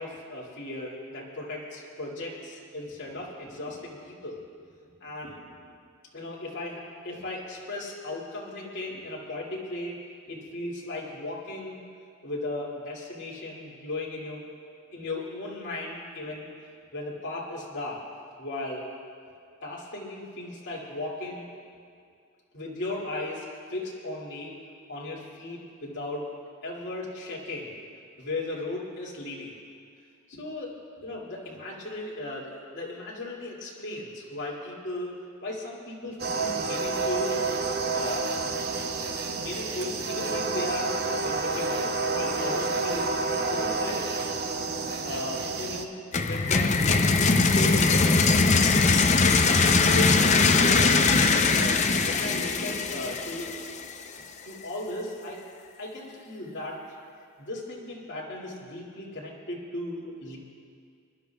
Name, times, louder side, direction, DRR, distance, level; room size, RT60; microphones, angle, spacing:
voice 1, 0.0-4.4 5.0-5.6 6.1-10.0 10.3-11.8 12.2-14.4 14.9-16.5 16.9-18.0 18.4-18.8 19.6-21.5 22.5-24.5 24.9-26.3 26.6-27.7 28.2-29.5 30.3-30.7 31.0-37.4 37.9-38.3 39.1-41.0 41.2-43.2 43.5-44.2 45.0-47.2 47.5-47.9 49.2-53.5 54.2-56.8 57.4-60.4, left 2 dB, 60° left, -5 dB, 2.5 m, -36 dB
sound 1, 36.2-45.8, right 3 dB, 50° right, 0.8 m, -29 dB
sound 2, 46.1-53.9, left 4 dB, 35° left, 0.6 m, -21 dB
28.0 x 11.5 x 2.3 m, 2.3 s
head